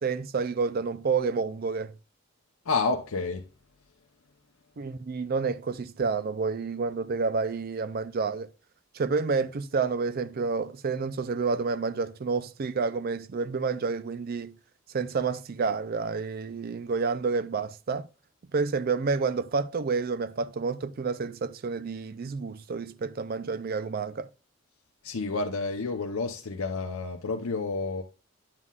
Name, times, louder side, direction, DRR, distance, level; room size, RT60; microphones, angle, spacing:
voice 1, 0.0-1.9 4.8-8.5 8.9-14.5 14.9-18.1 18.5-24.3, right 4 dB, 45° right, 0.4 m, -29 dB
voice 2, 2.7-3.5 25.0-28.0, left 3 dB, 85° left, 0.7 m, -30 dB
9.5 x 7.4 x 2.4 m
head